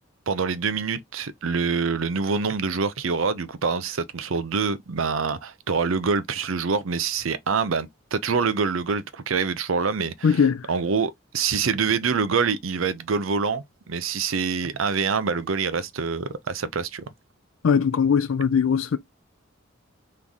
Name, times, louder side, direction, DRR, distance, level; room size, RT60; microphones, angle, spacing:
voice 1, 0.3-10.4 10.7-17.0, right 5 dB, 90° right, 0.6 m, -25 dB
voice 2, 10.2-10.6 17.6-19.0, left 6 dB, 85° left, 0.4 m, -20 dB
3.6 x 3.2 x 4.0 m
head